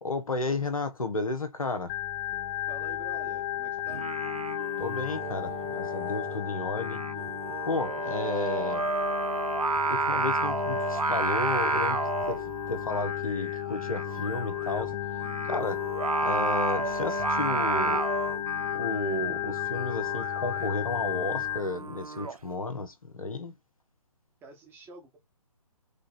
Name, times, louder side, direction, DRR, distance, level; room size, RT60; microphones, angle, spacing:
voice 1, 0.0-1.9 4.8-7.0 7.6-8.8 9.8-15.8 16.2-18.0 18.7-23.5, left 3 dB, 70° left, 1.2 m, -33 dB
Organ, 1.9-21.6, left 13 dB, 15° left, 0.5 m, -34 dB
voice 2, 2.7-4.0 8.1-8.2 24.4-25.2, right 3 dB, 10° right, 1.2 m, -47 dB
Singing, 3.9-22.4, right 4 dB, 80° right, 0.5 m, -32 dB
5.0 x 2.5 x 4.2 m
figure-of-eight pair, 135°, 18 cm